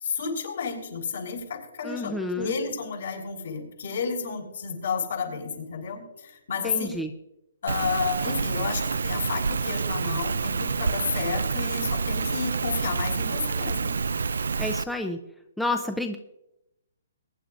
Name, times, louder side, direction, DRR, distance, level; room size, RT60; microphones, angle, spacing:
voice 1, 0.0-7.0 7.6-14.0, left 5 dB, 65° left, 1 dB, 5.2 m, -31 dB
voice 2, 1.8-2.5 6.6-7.1 14.6-15.2 15.6-16.2, left 2 dB, ahead, 4 dB, 0.6 m, -29 dB
Rain, 7.7-14.8, right 5 dB, 85° right, 0.4 m, -28 dB
22.5 x 10.5 x 2.6 m, 0.86 s
hypercardioid pair, 165°, 0 cm